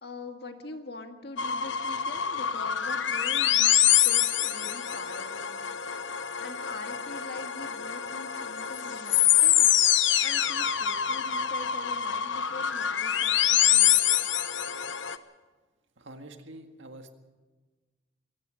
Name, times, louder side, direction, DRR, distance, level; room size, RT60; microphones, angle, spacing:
voice 1, 0.0-3.8 4.0-5.6 6.0-14.1, left 2 dB, 60° left, 5 dB, 1.9 m, -44 dB
sound 1, 1.4-15.2, left 11 dB, 80° left, 0.9 m, -25 dB
voice 2, 16.0-17.1, right 1 dB, 85° right, 5 dB, 1.9 m, -46 dB
22.5 x 18.0 x 6.5 m, 1.3 s
head